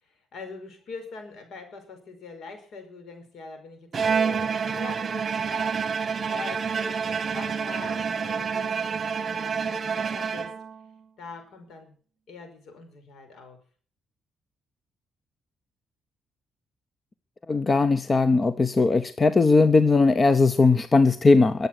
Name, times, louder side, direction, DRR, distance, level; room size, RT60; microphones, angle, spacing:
voice 1, 0.0-5.9 6.3-10.5 11.2-12.0 12.3-13.6, left 4 dB, 70° left, 6 dB, 5.1 m, -43 dB
Bowed string instrument, 3.9-10.9, right 6 dB, 40° right, 1.3 m, -28 dB
voice 2, 17.5-21.7, left 3 dB, 30° left, 12 dB, 0.8 m, -19 dB
22.5 x 8.1 x 6.2 m, 0.43 s
cardioid pair, 90°, 0 cm